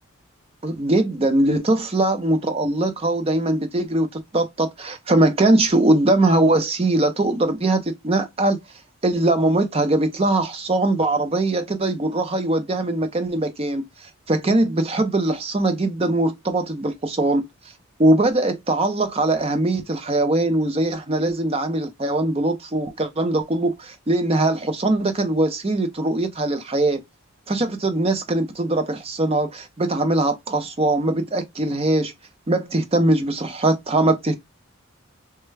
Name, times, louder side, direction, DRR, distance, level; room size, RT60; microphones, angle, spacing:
voice 1, 0.6-8.6 9.0-17.4 18.0-27.0 27.5-32.1 32.5-34.4, right 2 dB, 25° right, 0.5 m, -21 dB
3.3 x 2.2 x 3.1 m
head